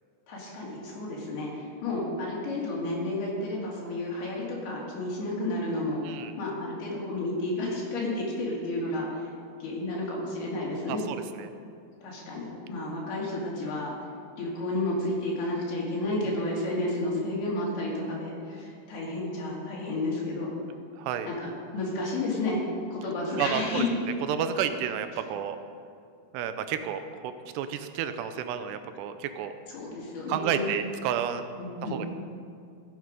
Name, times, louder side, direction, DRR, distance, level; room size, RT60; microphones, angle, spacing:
voice 1, 0.3-9.3 9.6-11.0 12.0-13.9 14.3-20.5 21.2-22.6 22.9-23.9 29.7-30.7 31.6-32.0, left 2 dB, 70° left, -4 dB, 4.4 m, -31 dB
voice 2, 10.9-11.5 21.0-21.3 23.4-23.8 24.3-25.6 26.3-29.5 30.3-31.4 31.8-32.1, right 9 dB, 85° right, 9 dB, 2.7 m, -31 dB
15.5 x 7.7 x 5.2 m, 2.4 s
omnidirectional pair, 4.9 m